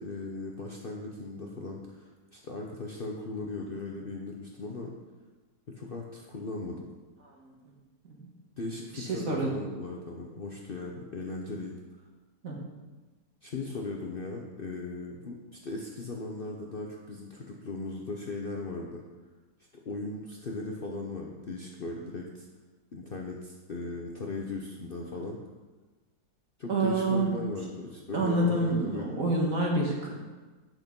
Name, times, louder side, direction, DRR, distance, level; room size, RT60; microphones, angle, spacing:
voice 1, 0.0-4.9 5.7-6.8 8.6-11.7 13.4-19.0 19.8-22.5 22.9-25.4 26.6-29.2, left 2 dB, 45° left, 0 dB, 0.8 m, -38 dB
voice 2, 8.9-9.5 12.4-12.6 26.7-27.3 28.1-30.1, right 2 dB, 55° right, -2 dB, 2.0 m, -27 dB
8.2 x 6.1 x 5.3 m, 1.2 s
omnidirectional pair, 1.7 m